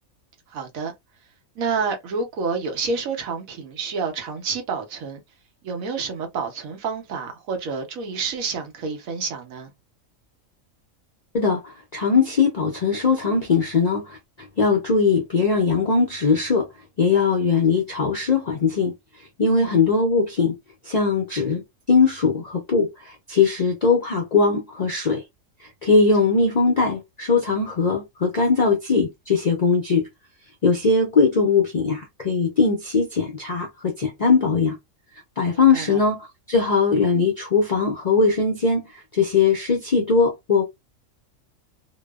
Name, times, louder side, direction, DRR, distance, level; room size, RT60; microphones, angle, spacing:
voice 1, 0.5-0.9 1.6-5.2 5.6-9.7 19.6-19.7 35.5-36.0, right 5 dB, 80° right, 1.2 m, -29 dB
voice 2, 11.3-16.7 17.0-18.9 19.2-20.6 20.8-21.6 21.9-25.2 25.6-30.1 30.6-34.8 35.4-40.6, left 4 dB, 60° left, 0.4 m, -20 dB
2.8 x 2.0 x 2.2 m
omnidirectional pair, 1.4 m